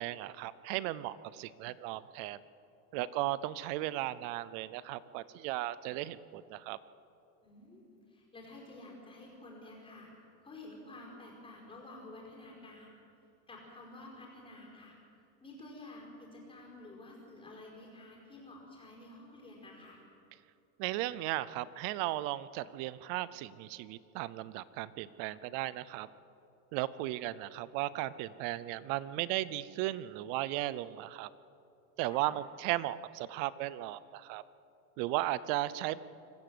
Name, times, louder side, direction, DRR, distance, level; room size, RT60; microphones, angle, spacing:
voice 1, 0.0-2.4 2.9-6.8 20.8-26.1 26.7-31.3 32.0-34.4 35.0-36.0, right 15 dB, 35° right, 18 dB, 0.4 m, -36 dB
voice 2, 7.4-10.1 10.4-13.0 13.5-14.9 15.4-20.0 32.1-32.3, left 2 dB, 10° left, -2 dB, 5.0 m, -51 dB
25.0 x 15.0 x 7.8 m, 2.7 s
supercardioid pair, 165°, 45 cm